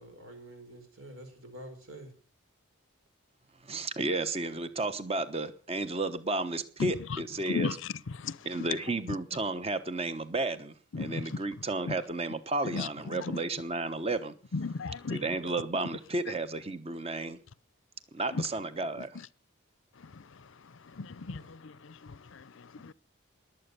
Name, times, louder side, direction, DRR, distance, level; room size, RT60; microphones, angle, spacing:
voice 1, 0.0-2.1 21.2-21.5, right 1 dB, 75° right, 4.5 m, -48 dB
voice 2, 3.6-7.8 8.4-14.3 15.1-17.4 18.1-19.2, right 2 dB, 30° right, 1.0 m, -33 dB
voice 3, 14.5-15.2 21.0-21.4 22.8-22.9, left 4 dB, 65° left, 0.6 m, -33 dB
20.5 x 8.0 x 6.7 m
head